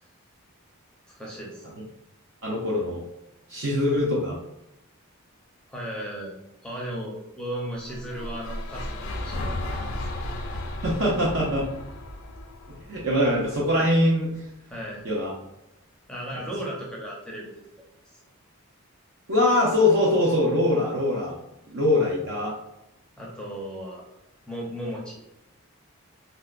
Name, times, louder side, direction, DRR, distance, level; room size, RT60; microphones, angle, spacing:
voice 1, 1.1-1.8 5.7-6.3 6.6-9.7 10.0-10.1 14.7-15.0 16.1-17.6 23.2-24.0 24.5-25.2, equal, 5° left, -4 dB, 0.6 m, -35 dB
voice 2, 2.4-3.0 3.5-4.4 10.8-11.7 12.9-14.4 15.0-15.3 19.3-21.3 21.7-22.5, left 1 dB, 60° right, -3 dB, 0.5 m, -23 dB
sound 1, 7.8-14.0, left 1 dB, 65° left, 0.5 m, -34 dB
4.1 x 2.1 x 2.4 m, 0.86 s
head